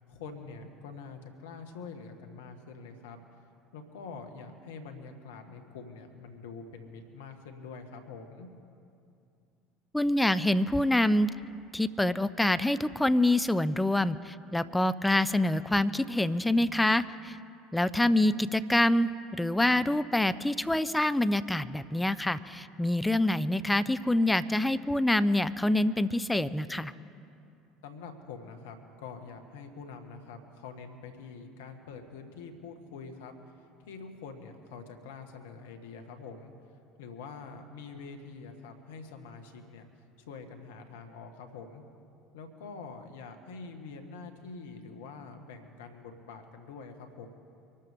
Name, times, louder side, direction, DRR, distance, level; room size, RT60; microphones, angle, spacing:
voice 1, 0.1-3.2 3.7-8.5 18.1-18.2 27.8-36.5 37.0-39.9 40.2-41.8 42.3-47.3, left 4 dB, 80° left, 6 dB, 1.6 m, -45 dB
voice 2, 9.9-11.3 11.7-17.4 17.7-19.1 19.4-26.9, left 1 dB, 10° left, 14 dB, 0.6 m, -26 dB
24.5 x 13.0 x 3.6 m, 2.5 s
hypercardioid pair, 70°, 0 cm